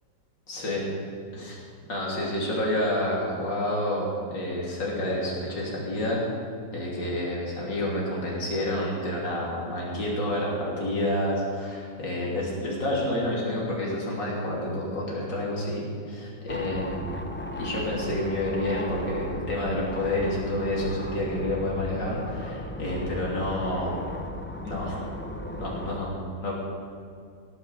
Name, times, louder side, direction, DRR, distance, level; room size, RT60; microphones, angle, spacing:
voice 1, 0.5-0.9 1.3-1.6 1.9-6.2 6.7-17.1 17.6-24.1 24.6-25.1 25.6-26.5, left 1 dB, 85° left, -4 dB, 3.8 m, -29 dB
sound 1, 16.5-26.0, left 1 dB, 10° left, 0.7 m, -36 dB
17.5 x 9.8 x 6.9 m, 2.3 s
omnidirectional pair, 1.9 m